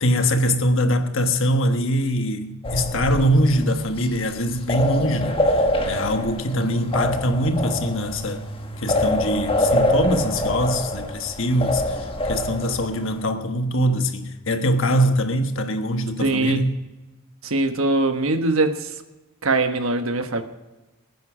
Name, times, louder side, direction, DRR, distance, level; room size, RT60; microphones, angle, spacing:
voice 1, 0.0-5.4 5.9-8.4 8.8-12.0 12.2-16.8, equal, 65° left, 1.3 m, -22 dB
sound 1, 2.6-13.3, left 1 dB, 25° left, 1.4 m, -25 dB
voice 2, 16.2-16.6 17.4-18.9 19.4-20.4, right 2 dB, 75° right, 1.2 m, -22 dB
20.5 x 9.3 x 5.0 m
head